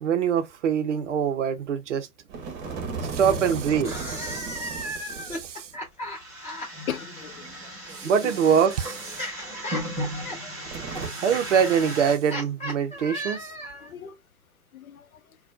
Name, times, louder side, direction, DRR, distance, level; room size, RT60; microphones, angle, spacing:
voice 1, 0.0-2.1 3.0-5.7 7.9-9.2 11.1-13.5, right 7 dB, 50° right, 0.6 m, -24 dB
sound 1, 2.3-5.5 5.8-5.9 7.2-9.2 9.5-9.6 10.7-11.1, right 5 dB, 30° right, 1.0 m, -36 dB
voice 2, 2.6-3.1 6.9-7.4 9.4-9.5 13.3-13.4 13.8-14.2 14.7-15.2, left 10 dB, 60° left, 0.6 m, -38 dB
sound 2, 3.7-7.0 8.0-13.9, equal, 15° left, 1.4 m, -37 dB
sound 3, 6.1-12.2, equal, 5° right, 1.9 m, -36 dB
4.0 x 2.2 x 2.5 m
figure-of-eight pair, 110°, 48 cm